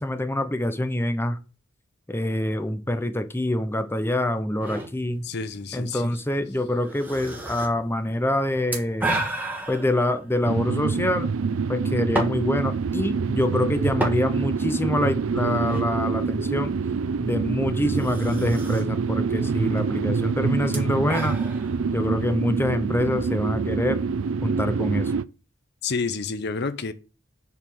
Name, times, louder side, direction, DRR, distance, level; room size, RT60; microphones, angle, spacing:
voice 1, 0.0-1.4 2.1-5.2 5.7-9.2 9.7-11.3 11.7-16.7 17.2-21.4 21.9-24.0 24.4-25.1, left 1 dB, 10° left, 0.7 m, -25 dB
sound 1, 4.6-24.3, right 1 dB, 10° right, 1.6 m, -36 dB
voice 2, 5.2-6.2 25.8-26.9, left 4 dB, 55° left, 0.7 m, -29 dB
sound 2, 10.4-25.2, right 5 dB, 90° right, 0.5 m, -26 dB
7.3 x 4.1 x 6.8 m
head